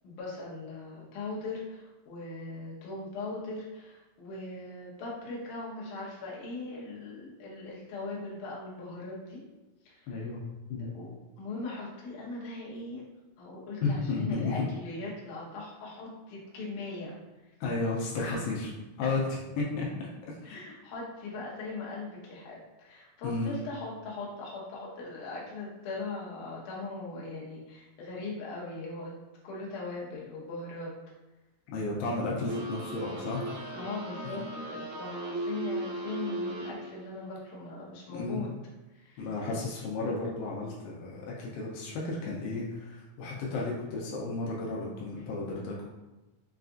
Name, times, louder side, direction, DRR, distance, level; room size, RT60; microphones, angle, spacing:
voice 1, 0.0-9.4 9.8-10.3 10.8-13.0 13.4-17.2 17.4-17.5 18.2-18.4 20.5-29.1 29.4-30.9 33.7-38.5 38.9-39.3, left 3 dB, 70° left, -4 dB, 2.2 m, -40 dB
voice 2, 10.1-10.4 10.7-10.9 13.8-14.6 17.6-18.7 19.0-20.1 20.4-20.6 23.2-23.6 31.7-33.4 38.1-38.4 39.2-45.9, left 3 dB, 85° left, -4 dB, 2.4 m, -33 dB
sound 1, 32.5-37.1, right 1 dB, 75° right, 2.0 m, -37 dB
5.7 x 2.4 x 2.5 m, 1.1 s
omnidirectional pair, 4.0 m